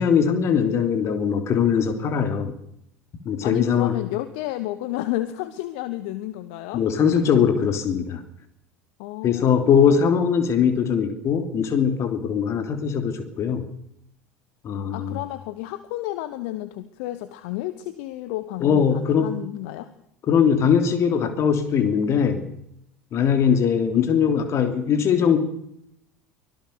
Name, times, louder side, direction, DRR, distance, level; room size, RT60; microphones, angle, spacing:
voice 1, 0.0-2.5 3.2-4.0 6.7-8.2 9.2-13.7 14.6-15.2 18.6-19.4 20.3-22.4 23.1-25.4, left 7 dB, 40° left, 8 dB, 3.2 m, -21 dB
voice 2, 3.4-6.8 9.0-10.1 14.9-19.9, left 15 dB, 55° left, 13 dB, 1.3 m, -31 dB
24.0 x 17.5 x 6.8 m, 0.75 s
figure-of-eight pair, 70°, 7 cm